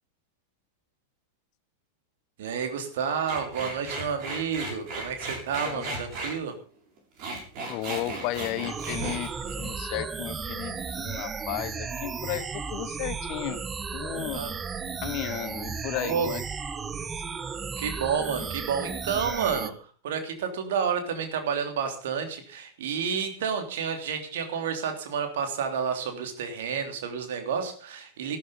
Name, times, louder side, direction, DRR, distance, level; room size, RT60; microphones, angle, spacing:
voice 1, 2.4-6.6 14.3-14.5 16.0-16.3 17.8-28.4, right 6 dB, 55° right, 5 dB, 3.2 m, -30 dB
sound 1, 3.3-6.4 7.0-10.3 10.6-11.0, right 2 dB, 40° right, 7.0 m, -36 dB
voice 2, 7.7-9.3 9.6-13.6 13.9-14.4 15.0-16.4 17.0-17.1, left 15 dB, 45° left, 16 dB, 0.9 m, -34 dB
sound 2, 8.6-19.7, right 5 dB, 20° right, 1.0 m, -34 dB
14.0 x 12.5 x 5.5 m, 0.40 s
figure-of-eight pair, 90°, 0 cm